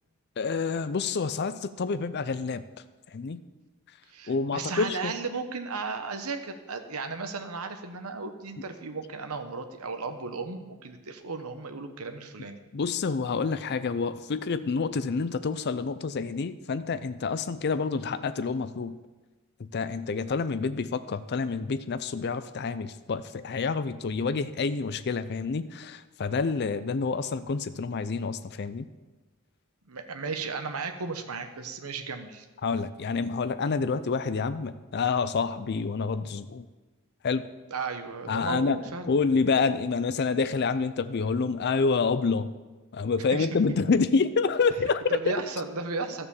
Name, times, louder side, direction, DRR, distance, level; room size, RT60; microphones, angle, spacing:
voice 1, 0.4-2.6 3.1-3.4 4.3-5.1 12.7-19.0 19.6-28.9 32.6-36.7 37.2-37.5 38.3-38.8 39.1-42.5 42.9-45.3, left 4 dB, 50° left, 13 dB, 0.4 m, -28 dB
voice 2, 4.1-12.6 29.9-32.4 37.7-39.1 43.3-43.8 45.1-46.3, right 4 dB, 80° right, 7 dB, 1.0 m, -35 dB
13.0 x 6.8 x 7.1 m, 1.2 s
head